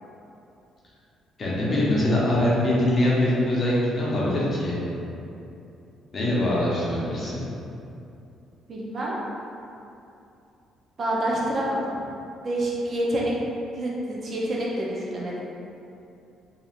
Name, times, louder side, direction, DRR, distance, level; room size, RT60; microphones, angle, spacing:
voice 1, 1.4-4.8 6.1-7.4, left 1 dB, 40° left, -6 dB, 0.7 m, -23 dB
voice 2, 8.7-9.1 11.0-11.8 12.4-13.3 13.7-15.5, right 1 dB, 45° right, -4 dB, 0.5 m, -27 dB
2.8 x 2.3 x 2.4 m, 2.7 s
cardioid pair, 105°, 0 cm